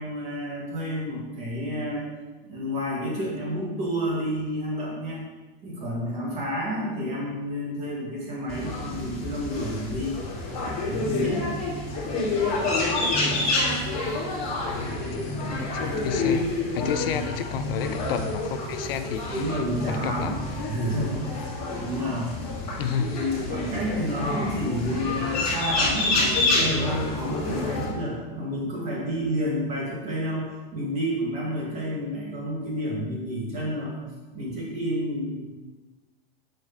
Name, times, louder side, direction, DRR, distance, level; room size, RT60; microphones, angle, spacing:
voice 1, 0.0-2.1 2.4-5.3 5.6-10.2 10.8-11.5 16.8-17.2 19.3-20.4 20.7-22.3 23.1-34.0 34.3-35.5, equal, 20° right, -3 dB, 1.5 m, -30 dB
sound 1, 8.5-27.9, left 2 dB, 20° left, 2.0 m, -28 dB
voice 2, 14.7-20.4 22.8-23.1, left 8 dB, 75° left, 9 dB, 0.5 m, -32 dB
6.9 x 3.2 x 5.0 m, 1.2 s
supercardioid pair, 170°, 29 cm